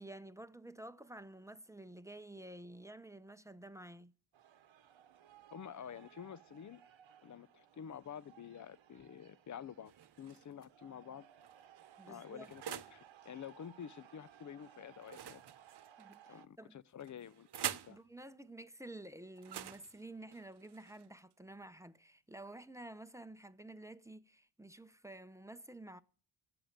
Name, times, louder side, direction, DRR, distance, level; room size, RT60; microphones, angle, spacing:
voice 1, 0.0-4.1 12.0-12.5 16.0-16.8 17.9-26.0, right 1 dB, 5° right, 0.7 m, -51 dB
sound 1, 4.3-16.5, right 10 dB, 75° right, 1.2 m, -61 dB
voice 2, 5.5-6.8 7.2-9.9 10.2-11.3 12.1-15.4 16.3-18.0, left 8 dB, 40° left, 0.6 m, -49 dB
sound 2, 9.9-10.6 11.4-13.0 15.0-16.2 17.0-18.0 19.4-21.3, right 10 dB, 55° right, 0.9 m, -46 dB
14.0 x 7.9 x 8.8 m
cardioid pair, 85°, 47 cm